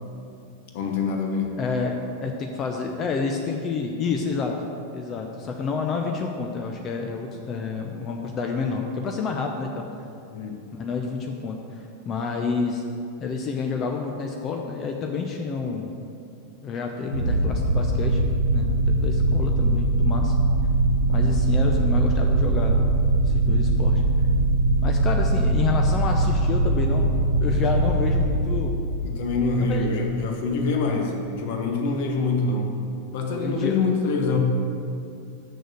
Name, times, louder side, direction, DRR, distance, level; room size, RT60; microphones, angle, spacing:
voice 1, 0.7-1.6 10.3-10.6 29.0-32.7 33.1-34.4, left 3 dB, 50° left, 2 dB, 1.2 m, -25 dB
voice 2, 1.6-4.7 4.9-9.9 10.8-12.8 13.2-15.9 16.6-18.2 18.5-20.4 21.1-22.9 23.2-24.0 24.8-27.1 27.4-28.7 29.6-29.9 33.3-33.8, left 5 dB, 30° left, 2 dB, 0.6 m, -29 dB
sound 1, 17.1-30.1, right 2 dB, 85° right, 1.1 m, -21 dB
6.7 x 6.3 x 6.3 m, 2.5 s
figure-of-eight pair, 90°, 0 cm